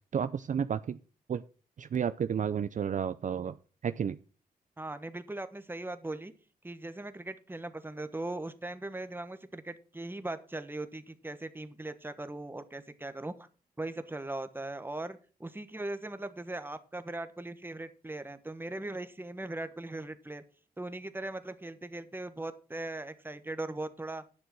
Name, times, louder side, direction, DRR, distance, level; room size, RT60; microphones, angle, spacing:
voice 1, 0.1-1.0 1.3-1.4 1.8-3.6 3.8-4.2, right 8 dB, 55° right, 11 dB, 0.5 m, -31 dB
voice 2, 4.8-6.3 6.6-13.5 13.8-20.4 20.8-24.2, right 2 dB, 15° right, 11 dB, 1.1 m, -39 dB
10.0 x 6.4 x 6.1 m, 0.37 s
cardioid pair, 80°, 16 cm